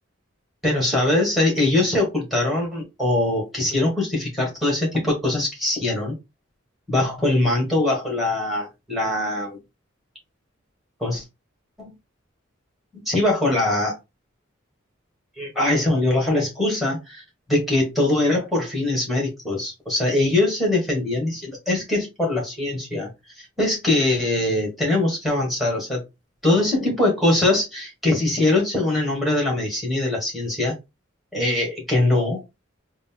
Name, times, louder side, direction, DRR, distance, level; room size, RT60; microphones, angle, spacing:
voice 1, 0.6-6.1 6.9-9.6 11.0-11.2 11.8-11.9 12.9-14.0 15.4-17.2 17.5-23.1 23.6-26.0 26.4-30.7 31.3-32.4, left 2 dB, ahead, 1.7 m, -22 dB
3.9 x 2.2 x 3.7 m
head